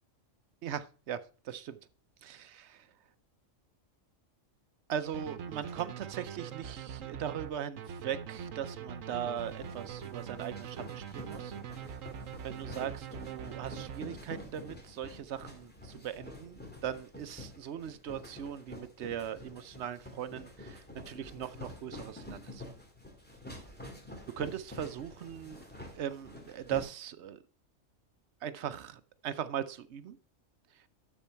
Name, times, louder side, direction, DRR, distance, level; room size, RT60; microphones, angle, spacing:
voice 1, 0.6-1.8 2.2-2.9 4.9-11.5 12.4-22.6 24.4-25.6 25.9-27.4 28.4-30.2, right 9 dB, 65° right, 0.9 m, -39 dB
sound 1, 5.1-14.5, right 8 dB, 80° right, 1.2 m, -43 dB
sound 2, 9.4-26.8, left 1 dB, 5° left, 2.0 m, -48 dB
12.5 x 4.5 x 4.4 m
omnidirectional pair, 1.3 m